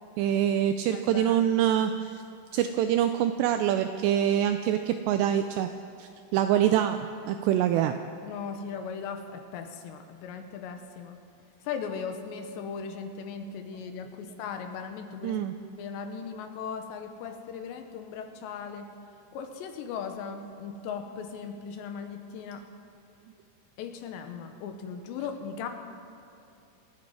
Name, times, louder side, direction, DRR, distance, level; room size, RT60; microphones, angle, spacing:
voice 1, 0.2-2.2 2.5-5.7 6.0-7.0 7.3-8.0 15.2-15.5, right 10 dB, 85° right, 8 dB, 2.5 m, -25 dB
voice 2, 0.9-1.5 8.2-11.2 11.6-15.5 15.7-18.9 19.3-22.7 23.8-25.7, left 6 dB, 75° left, 6 dB, 3.0 m, -38 dB
27.5 x 9.5 x 4.9 m, 2.7 s
omnidirectional pair, 5.4 m